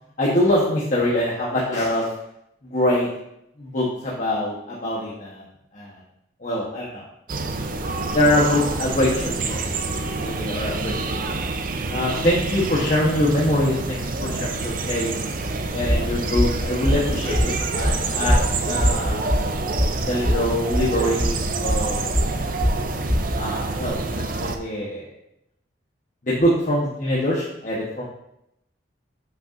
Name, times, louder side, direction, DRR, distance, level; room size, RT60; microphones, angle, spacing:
voice 1, 0.2-2.1 2.6-3.1 3.6-5.4 5.7-6.0 6.4-7.0 8.1-11.4 11.9-15.1 15.7-18.4 18.6-19.3 20.1-22.1 23.4-25.1 26.2-28.0, left 1 dB, 40° left, -6 dB, 1.1 m, -24 dB
sound 1, 7.3-24.6, right 3 dB, 45° right, 0.5 m, -27 dB
sound 2, 15.6-23.4, equal, 20° left, 1.2 m, -22 dB
8.2 x 5.8 x 2.6 m, 0.80 s
head